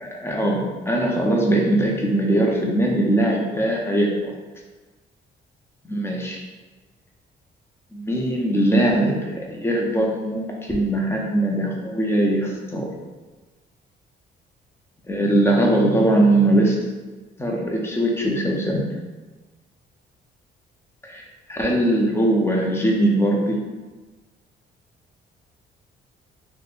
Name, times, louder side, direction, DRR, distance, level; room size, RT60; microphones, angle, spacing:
voice 1, 0.0-4.3 5.8-6.4 7.9-12.9 15.1-16.8 17.4-18.8 21.0-23.6, right 1 dB, 10° left, -1 dB, 0.6 m, -21 dB
3.4 x 2.1 x 2.5 m, 1.3 s
cardioid pair, 90°, 20 cm